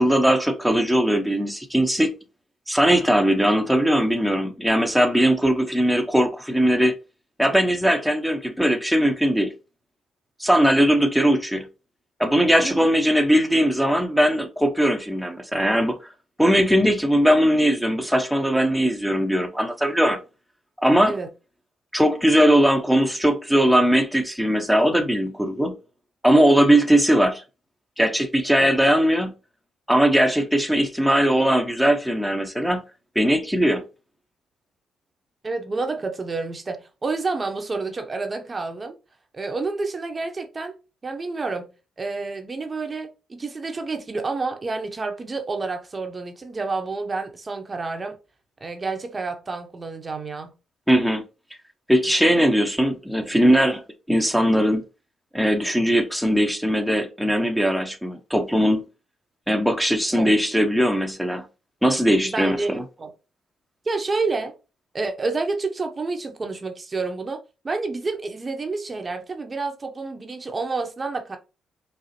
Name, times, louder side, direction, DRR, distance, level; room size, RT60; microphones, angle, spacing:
voice 1, 0.0-2.1 2.7-6.9 7.4-9.5 10.4-11.7 12.2-16.1 16.4-20.2 20.8-21.2 21.9-25.7 26.2-27.4 28.0-29.3 29.9-32.8 33.2-33.8 50.9-51.2 51.9-54.9 55.3-58.9 59.5-61.5 61.8-62.8, equal, ahead, 0.7 m, -20 dB
voice 2, 35.4-39.0 39.3-40.8 41.0-48.2 48.6-50.5 60.2-60.3 62.2-62.7 63.0-63.1 63.8-64.6 64.9-71.4, right 3 dB, 35° right, 0.7 m, -29 dB
4.9 x 2.0 x 2.9 m
supercardioid pair, 55°, 0 cm